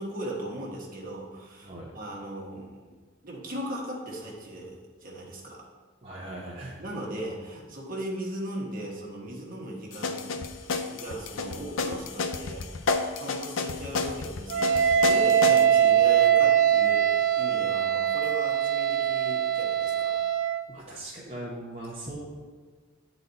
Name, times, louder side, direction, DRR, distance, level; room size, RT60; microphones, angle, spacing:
voice 1, 0.0-2.9 3.2-5.7 6.8-20.2, right 1 dB, 45° right, -2 dB, 1.4 m, -38 dB
voice 2, 6.0-6.8 20.7-22.3, right 1 dB, 30° right, -6 dB, 0.9 m, -39 dB
sound 1, 9.9-15.6, left 4 dB, 75° left, 0.5 m, -30 dB
Wind instrument woodwind instrument, 14.5-20.7, right 9 dB, 80° right, 0.4 m, -22 dB
9.1 x 4.1 x 4.1 m, 1.4 s
head